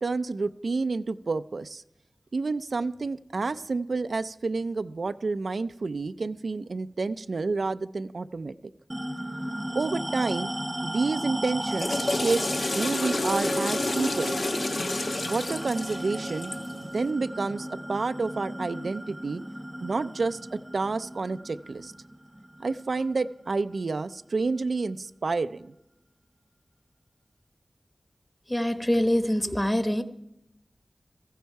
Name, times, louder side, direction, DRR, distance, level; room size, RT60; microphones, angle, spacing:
voice 1, 0.0-1.8 2.3-8.5 9.7-10.5 10.8-12.4 12.7-14.4 15.3-16.5 16.8-19.4 19.8-21.9 22.6-25.7, right 3 dB, 85° right, 10 dB, 0.5 m, -29 dB
sound 1, 8.9-23.7, right 1 dB, 20° right, 0.8 m, -35 dB
Water / Toilet flush, 11.5-16.8, left 2 dB, 85° left, 1.3 m, -30 dB
voice 2, 28.5-30.0, equal, 10° left, 9 dB, 1.1 m, -24 dB
15.5 x 14.5 x 4.7 m, 0.83 s
wide cardioid pair, 65°, 0 cm